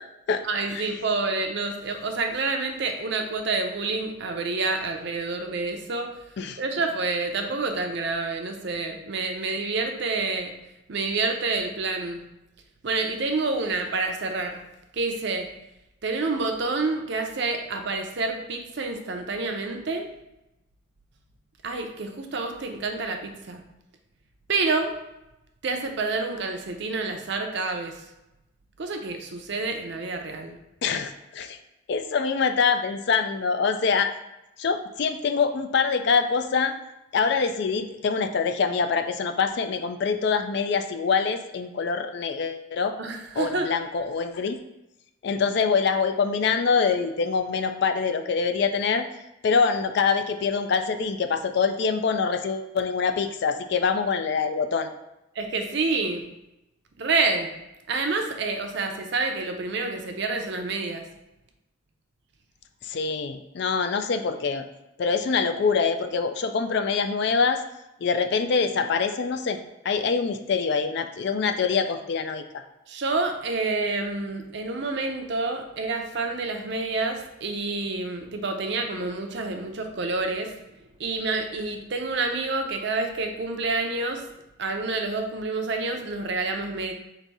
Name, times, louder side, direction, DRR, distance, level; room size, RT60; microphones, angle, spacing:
voice 1, 0.4-6.2 6.6-10.5 10.9-12.2 12.8-14.6 14.9-15.5 16.0-20.1 21.6-23.6 24.5-24.9 25.6-28.0 28.8-30.6 43.0-43.7 55.4-56.3 57.0-57.5 57.9-61.1 72.9-80.5 81.0-84.3 84.6-86.9, right 3 dB, 55° right, 4 dB, 0.5 m, -28 dB
voice 2, 30.8-31.6 31.9-34.1 34.6-36.7 37.1-43.0 43.4-44.6 45.2-49.1 49.4-54.9 62.8-64.6 65.0-67.6 68.0-69.6 69.8-72.6, left 5 dB, 55° left, 8 dB, 0.3 m, -25 dB
4.0 x 2.6 x 4.6 m, 0.92 s
head